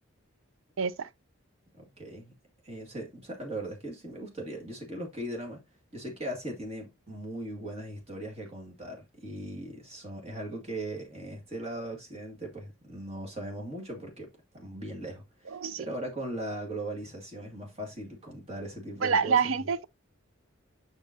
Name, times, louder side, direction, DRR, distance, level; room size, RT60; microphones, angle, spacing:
voice 1, 0.8-1.1 15.5-15.9 19.0-19.8, right 5 dB, 70° right, 0.5 m, -27 dB
voice 2, 1.8-2.3 2.6-5.6 5.9-14.3 14.5-19.7, right 1 dB, 30° right, 2.1 m, -39 dB
7.2 x 6.0 x 2.8 m
head